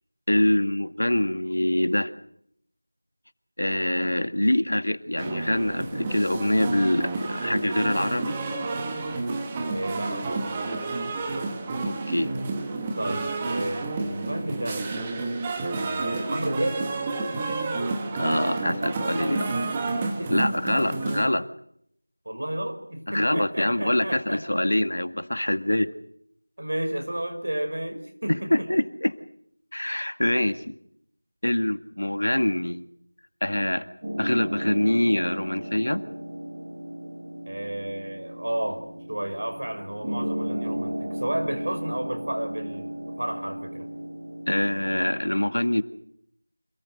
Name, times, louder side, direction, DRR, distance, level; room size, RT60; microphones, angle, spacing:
voice 1, 0.3-2.1 3.6-8.4 11.9-12.3 18.2-19.4 20.3-21.5 23.1-25.9 28.5-29.1 29.7-30.7 31.4-32.8 33.4-33.9 34.2-36.0 44.5-45.8, left 1 dB, 75° left, 10 dB, 1.9 m, -24 dB
sound 1, 5.2-21.3, right 3 dB, 5° right, 1.0 m, -30 dB
voice 2, 9.7-10.5 11.1-11.4 13.0-14.9 15.7-16.8 19.2-19.6 20.1-21.0 22.2-24.5 26.6-28.9 37.5-43.9, right 1 dB, 50° right, 6 dB, 6.0 m, -32 dB
sound 2, 34.0-45.2, right 1 dB, 25° right, 3.0 m, -35 dB
27.5 x 19.5 x 7.9 m, 0.71 s
figure-of-eight pair, 180°, 0 cm